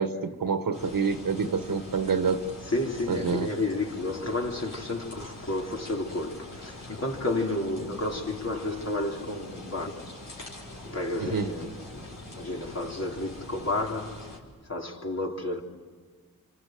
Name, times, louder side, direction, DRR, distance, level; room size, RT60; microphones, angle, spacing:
voice 1, 0.0-2.4 3.1-3.5 11.2-11.5, right 5 dB, 75° right, 1.6 m, -27 dB
sound 1, 0.7-14.4, left 2 dB, 65° left, 5.1 m, -44 dB
voice 2, 2.6-10.2 10.8-15.6, left 2 dB, 45° left, 3.7 m, -31 dB
27.5 x 26.0 x 7.9 m
cardioid pair, 50°, 35 cm